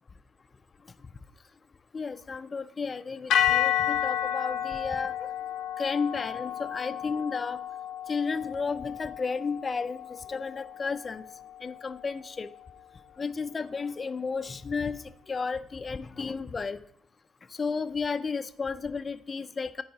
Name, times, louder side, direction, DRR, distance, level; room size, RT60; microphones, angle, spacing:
voice 1, 1.9-5.2 5.8-7.6 8.1-11.2 11.6-12.5 13.2-16.8 17.5-19.8, left 5 dB, 35° left, 10 dB, 0.3 m, -33 dB
sound 1, 3.3-11.6, left 10 dB, 80° left, 0.6 m, -31 dB
13.5 x 4.7 x 2.7 m, 0.72 s
cardioid pair, 90°, 0 cm